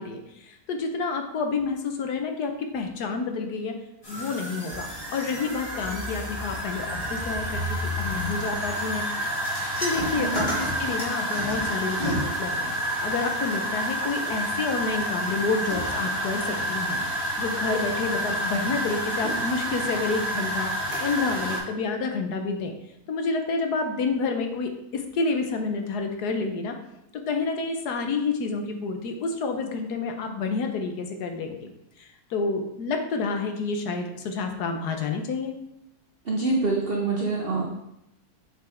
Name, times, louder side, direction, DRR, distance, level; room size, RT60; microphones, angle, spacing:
voice 1, 0.0-3.7 4.1-9.0 9.8-20.7 21.0-22.7 23.1-26.7 27.1-31.6 32.0-35.5, left 4 dB, 80° left, 5 dB, 1.4 m, -29 dB
sound 1, 4.0-21.6, equal, 20° left, 2.2 m, -29 dB
voice 2, 10.1-10.5 36.2-37.7, right 3 dB, 45° right, -1 dB, 0.8 m, -26 dB
8.2 x 4.6 x 3.5 m, 0.86 s
omnidirectional pair, 1.7 m